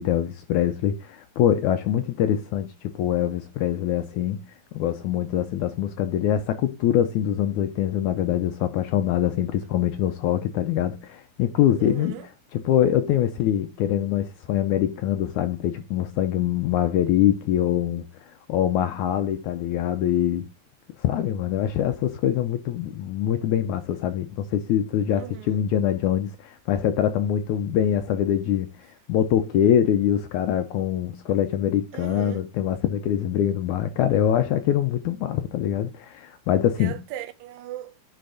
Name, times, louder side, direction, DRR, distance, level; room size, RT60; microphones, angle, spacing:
voice 1, 0.0-4.4 4.7-12.2 12.5-20.5 21.0-28.7 29.1-37.0, left 10 dB, 80° left, 1.8 m, -24 dB
voice 2, 11.8-12.3 25.1-25.6 31.9-32.5 36.8-38.0, right 13 dB, 85° right, 2.5 m, -38 dB
10.0 x 4.4 x 3.9 m
omnidirectional pair, 4.0 m